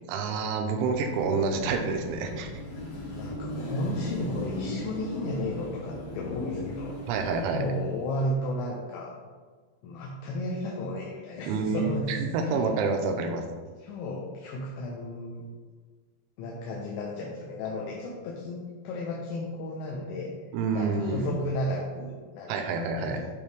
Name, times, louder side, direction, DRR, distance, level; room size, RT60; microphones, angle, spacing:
voice 1, 0.1-2.5 7.1-7.6 11.5-13.4 20.5-21.4 22.5-23.2, right 4 dB, 85° right, 3 dB, 2.9 m, -28 dB
Car passing by / Traffic noise roadway noise / Engine, 0.7-8.1, left 1 dB, 60° left, 2.7 m, -37 dB
voice 2, 3.2-7.1 7.5-9.2 9.8-12.1 12.4-12.6 13.8-15.4 16.4-20.3 20.7-22.7 23.0-23.3, left 1 dB, 80° left, -3 dB, 2.8 m, -33 dB
9.2 x 3.1 x 3.4 m, 1.5 s
omnidirectional pair, 5.5 m